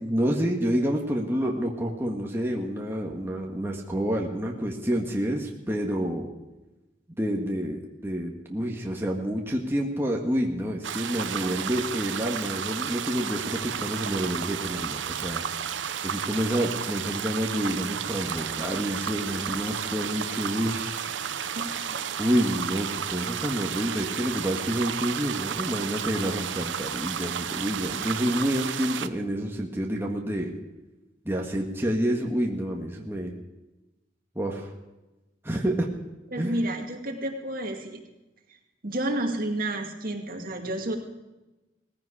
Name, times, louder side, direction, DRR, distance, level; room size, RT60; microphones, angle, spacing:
voice 1, 0.0-6.3 7.2-21.0 22.2-30.5 31.2-33.3 34.3-34.7 35.4-35.9 36.4-36.5, equal, 15° right, -1 dB, 1.7 m, -28 dB
sound 1, 10.8-29.1, right 8 dB, 85° right, 0.8 m, -32 dB
voice 2, 36.3-38.0 38.8-41.0, right 1 dB, 50° right, 3 dB, 2.3 m, -30 dB
18.5 x 15.5 x 4.9 m, 1.0 s
head